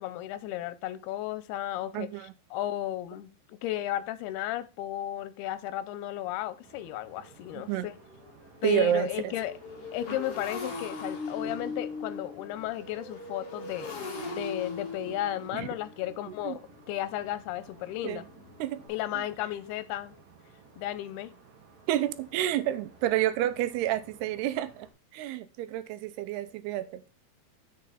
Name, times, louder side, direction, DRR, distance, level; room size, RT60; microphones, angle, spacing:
voice 1, 0.0-2.1 2.5-7.9 8.6-9.5 9.9-16.6 16.9-18.2 18.9-20.2 20.8-21.3, left 13 dB, 90° left, 2.6 m, -34 dB
voice 2, 1.9-2.3 7.5-7.9 8.6-9.3 15.5-15.7 16.4-16.6 18.0-18.2 18.6-18.8 19.1-19.3 21.9-27.0, right 12 dB, 90° right, 2.7 m, -29 dB
Motorcycle, 6.3-6.4 6.8-7.0 7.3-18.9, left 3 dB, 40° left, 2.6 m, -40 dB
sound 1, 6.6-24.9, right 5 dB, 60° right, 3.4 m, -56 dB
7.4 x 6.9 x 4.0 m
omnidirectional pair, 4.6 m